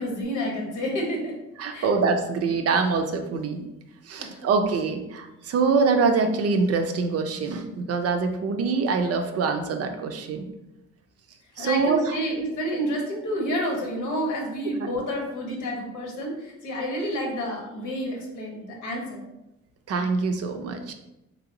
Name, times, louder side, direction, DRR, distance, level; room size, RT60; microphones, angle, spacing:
voice 1, 0.0-1.3 1.7-1.9 4.2-4.5 11.6-19.2, equal, 90° left, 0 dB, 1.0 m, -29 dB
voice 2, 1.6-3.6 4.0-10.5 11.6-12.2 19.9-20.9, right 4 dB, 55° right, 6 dB, 0.5 m, -24 dB
3.3 x 2.9 x 2.6 m, 0.93 s
cardioid pair, 90°, 30 cm